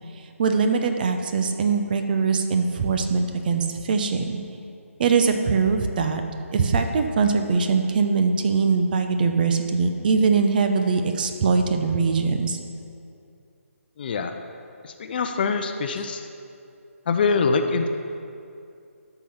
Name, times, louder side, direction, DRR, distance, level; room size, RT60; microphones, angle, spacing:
voice 1, 0.4-4.4 5.0-6.2 6.5-12.6, right 5 dB, 40° right, 6 dB, 0.8 m, -22 dB
voice 2, 14.0-14.3 14.8-16.3 17.1-17.9, left 4 dB, 40° left, 6 dB, 0.7 m, -24 dB
13.0 x 5.8 x 5.9 m, 2.5 s
figure-of-eight pair, 150°, 8 cm